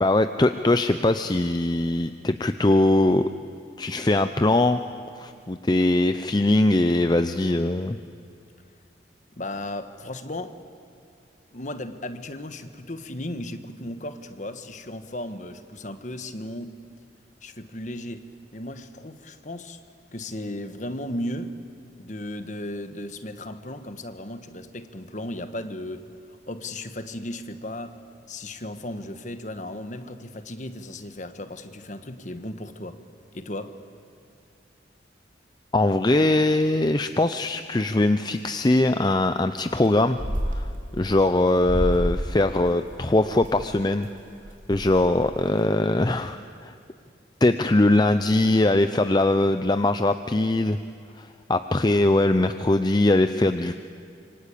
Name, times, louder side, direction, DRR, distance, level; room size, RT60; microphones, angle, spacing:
voice 1, 0.0-3.2 3.8-4.8 5.1-8.0 35.7-40.2 40.5-44.1 44.7-46.7 47.4-50.8 51.2-53.7, left 2 dB, 25° left, 9 dB, 0.6 m, -21 dB
voice 2, 9.4-10.6 11.5-16.8 17.4-19.8 20.1-21.6 22.0-26.0 26.5-28.0 28.3-33.0 33.3-33.8, left 1 dB, 40° left, 8 dB, 1.4 m, -35 dB
sound 1, 39.6-39.9 40.1-41.2 41.6-42.3 42.7-43.7 44.2-44.3 44.5-45.6, equal, 45° right, 2.9 m, -29 dB
26.5 x 24.5 x 8.5 m, 2.5 s
head